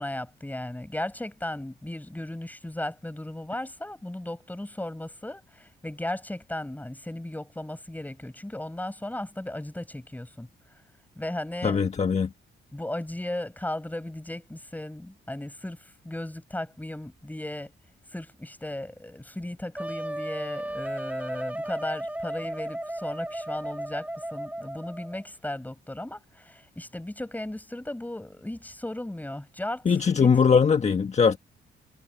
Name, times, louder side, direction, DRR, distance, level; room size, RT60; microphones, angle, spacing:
voice 1, 0.0-10.5 11.1-11.8 12.7-17.7 18.1-29.9 30.2-30.3, left 1 dB, 10° left, 6.4 m, -36 dB
voice 2, 11.6-12.3 29.8-31.4, left 6 dB, 35° left, 1.5 m, -21 dB
Wind instrument woodwind instrument, 19.8-25.3, right 1 dB, 5° right, 8.0 m, -34 dB
cardioid pair, 90°, 20 cm